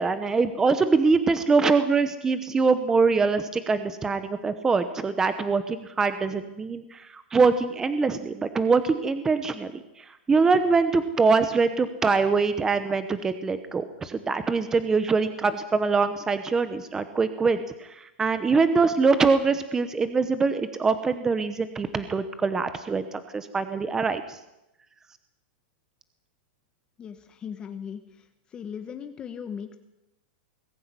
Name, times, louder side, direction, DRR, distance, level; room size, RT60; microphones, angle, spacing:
voice 1, 0.0-24.4, right 4 dB, 10° right, 11 dB, 0.9 m, -24 dB
voice 2, 27.0-28.3 28.5-29.8, left 7 dB, 15° left, 8 dB, 1.2 m, -38 dB
22.0 x 14.5 x 9.8 m, 0.90 s
supercardioid pair, 165°, 6 cm